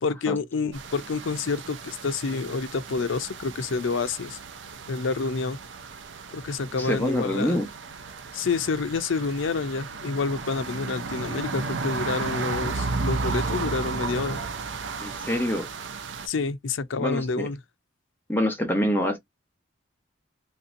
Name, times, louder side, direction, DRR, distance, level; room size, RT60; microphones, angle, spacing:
voice 1, 0.0-4.4 4.9-5.6 6.3-7.6 8.3-14.4 16.3-17.6, left 4 dB, 85° left, 0.5 m, -28 dB
sound 1, 0.7-16.3, right 4 dB, 70° right, 0.6 m, -34 dB
voice 2, 6.8-7.7 15.0-15.7 17.0-17.5 18.3-19.2, equal, 10° left, 1.0 m, -26 dB
3.2 x 2.7 x 2.5 m
head